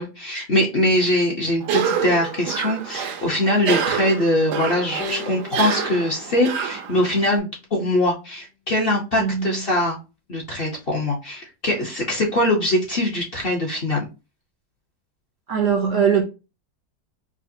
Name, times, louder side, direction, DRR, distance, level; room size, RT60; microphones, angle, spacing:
voice 1, 0.0-10.0 10.3-14.1, left 1 dB, 45° left, 0.8 m, -22 dB
Cough, 1.6-7.4, right 7 dB, 80° right, 1.2 m, -27 dB
sound 1, 5.0-8.3, left 7 dB, 70° left, 1.2 m, -41 dB
voice 2, 9.2-9.6 15.5-16.2, right 7 dB, 65° right, 0.8 m, -20 dB
4.9 x 2.1 x 2.6 m
omnidirectional pair, 1.7 m